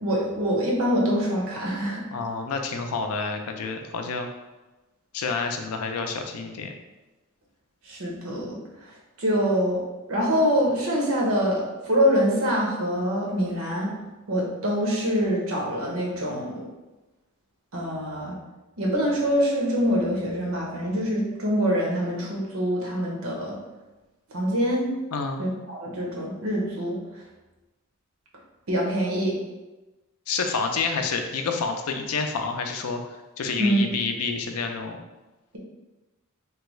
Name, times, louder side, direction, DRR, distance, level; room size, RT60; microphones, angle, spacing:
voice 1, 0.0-2.0 7.9-8.6 9.2-9.8 10.1-13.9 14.3-16.6 17.7-18.4 18.8-23.5 24.3-24.8 25.4-27.0 28.7-29.3 33.6-33.8, equal, 70° right, -2 dB, 0.8 m, -25 dB
voice 2, 2.1-4.3 5.1-6.7 25.1-25.4 30.3-35.0, left 4 dB, 90° left, 5 dB, 0.4 m, -29 dB
3.2 x 2.3 x 3.0 m, 1.1 s
head